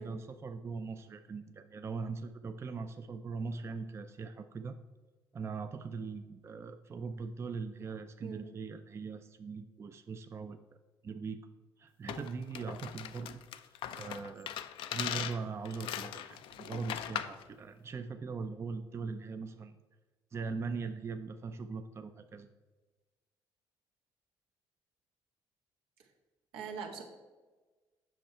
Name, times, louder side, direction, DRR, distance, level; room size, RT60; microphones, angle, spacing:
voice 1, 0.0-4.8 5.3-10.6 11.0-11.4 11.8-13.4 13.9-14.6 14.9-19.8 20.3-22.5, right 4 dB, 30° right, 8 dB, 0.4 m, -40 dB
sound 1, 12.1-17.4, left 11 dB, 80° left, 0.4 m, -40 dB
voice 2, 26.5-27.0, right 5 dB, 90° right, 2 dB, 1.4 m, -42 dB
7.9 x 6.2 x 4.4 m, 1.3 s
cardioid pair, 105°, 9 cm